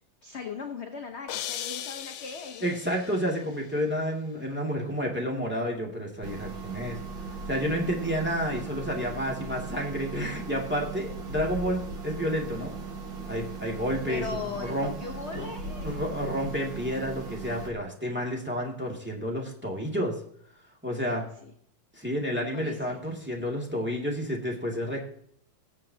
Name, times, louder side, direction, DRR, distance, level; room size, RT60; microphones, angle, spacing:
voice 1, 0.2-2.7 14.1-16.0 21.1-21.5 22.5-22.9, left 5 dB, 50° left, 4 dB, 0.9 m, -39 dB
sound 1, 1.3-3.4, left 10 dB, 90° left, 1.6 m, -37 dB
voice 2, 2.6-7.0 7.5-12.7 13.3-14.2 14.5-14.9 15.3-15.5 15.8-20.2 20.8-21.3 21.9-25.0, equal, 5° right, -2 dB, 2.0 m, -30 dB
sound 2, 6.2-17.7, right 4 dB, 65° right, 2.3 m, -38 dB
21.5 x 7.5 x 2.8 m, 0.65 s
omnidirectional pair, 2.3 m